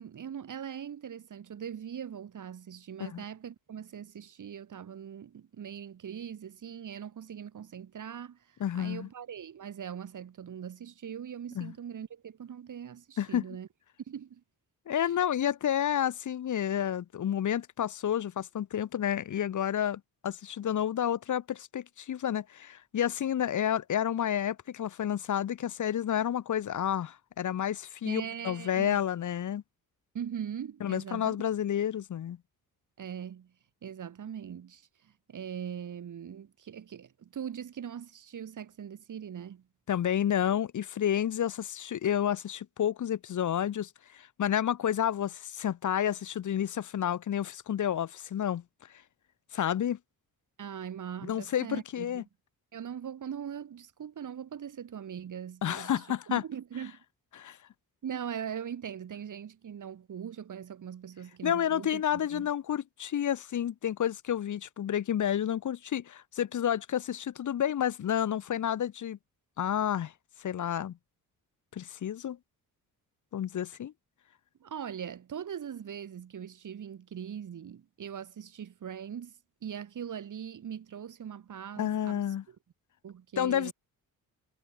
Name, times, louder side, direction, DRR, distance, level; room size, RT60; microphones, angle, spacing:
voice 1, 0.0-13.7 14.1-14.4 15.0-15.1 28.0-29.0 30.1-31.4 33.0-33.5 33.8-39.6 50.6-52.2 52.7-57.0 58.0-62.5 74.6-79.3 79.6-82.2 83.0-83.7, right 8 dB, 55° right, 2.2 m, -41 dB
voice 2, 8.6-9.1 11.5-11.7 13.2-13.4 14.9-29.6 30.8-32.4 39.9-48.6 49.5-50.0 51.2-52.2 55.6-56.4 57.3-57.6 61.4-69.2 69.6-70.1 70.4-71.0 71.7-72.4 73.3-73.9 81.8-82.4 83.4-83.7, left 10 dB, 55° left, 1.0 m, -30 dB
cardioid pair, 105°, 37 cm